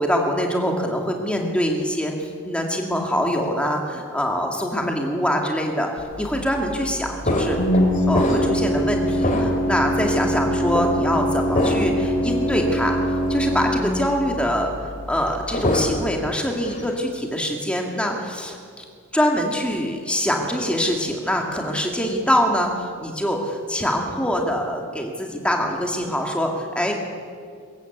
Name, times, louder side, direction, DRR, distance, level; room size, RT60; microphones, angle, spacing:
voice 1, 0.0-5.9 6.2-7.7 8.1-13.0 13.3-18.8 19.1-27.0, equal, 5° left, 1 dB, 2.2 m, -24 dB
Organ, 6.0-16.1, equal, 60° left, 6.5 m, -24 dB
sound 1, 7.2-8.7 9.2-9.8 10.7-10.9 11.5-12.0 12.5-12.6 15.3-16.2 16.5-16.9, left 1 dB, 35° left, 2.5 m, -24 dB
23.5 x 14.0 x 8.2 m, 2.1 s
head